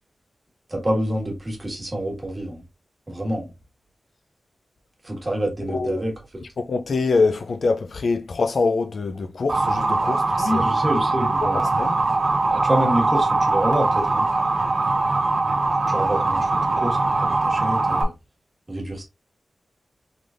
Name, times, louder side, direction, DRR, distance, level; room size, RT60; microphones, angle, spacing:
voice 1, 0.7-2.6 3.1-3.5 5.0-6.4 10.3-11.6 12.5-14.3 15.9-18.1 18.7-19.0, equal, 25° right, 1.4 m, -27 dB
voice 2, 5.7-6.0 6.6-10.6 11.5-12.0, left 4 dB, 60° left, 0.3 m, -24 dB
Motor vehicle (road) / Siren, 9.5-18.0, right 3 dB, 45° right, 0.7 m, -21 dB
3.8 x 3.2 x 2.4 m
wide cardioid pair, 150°, 0 cm